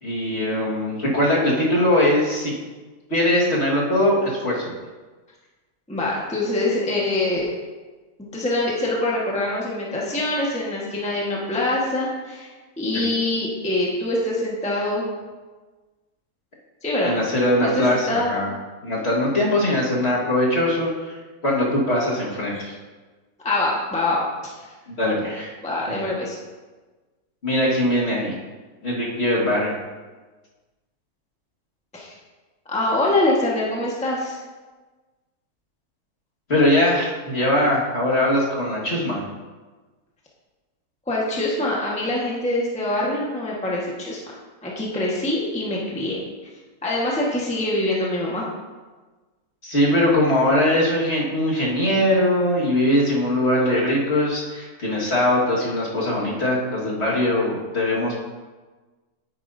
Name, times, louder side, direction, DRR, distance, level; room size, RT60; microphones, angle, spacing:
voice 1, 0.0-2.5 3.1-4.7 12.9-13.0 17.0-18.5 18.8-21.2 21.4-22.7 24.9-25.5 25.9-26.0 27.4-28.3 28.8-29.7 36.5-39.2 49.6-58.2, left 1 dB, 40° left, -5 dB, 2.0 m, -21 dB
voice 2, 5.9-7.5 8.3-12.5 12.8-15.1 16.8-17.2 17.6-18.3 22.5-22.6 23.4-24.5 25.6-26.4 31.9-32.1 32.7-34.4 41.1-44.2 44.6-46.2 46.8-48.5, left 2 dB, 5° left, -4 dB, 1.2 m, -24 dB
9.6 x 9.1 x 2.7 m, 1.3 s
omnidirectional pair, 1.8 m